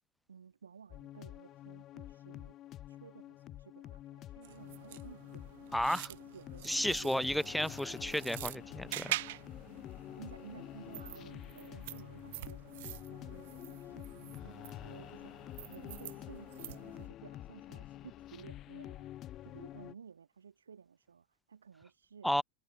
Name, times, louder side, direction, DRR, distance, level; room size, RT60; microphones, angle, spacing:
voice 1, 0.3-2.5 2.9-5.5 6.1-7.3 10.2-14.1 14.4-15.3 15.7-19.1 19.4-22.3, right 6 dB, 70° right, 2.0 m, -55 dB
sound 1, 0.9-19.9, left 13 dB, 35° left, 0.6 m, -48 dB
sound 2, 4.4-17.1, right 18 dB, 50° right, 1.2 m, -46 dB
voice 2, 5.7-6.1 6.6-9.2 22.2-22.4, equal, ahead, 0.8 m, -32 dB
figure-of-eight pair, 90°, 0 cm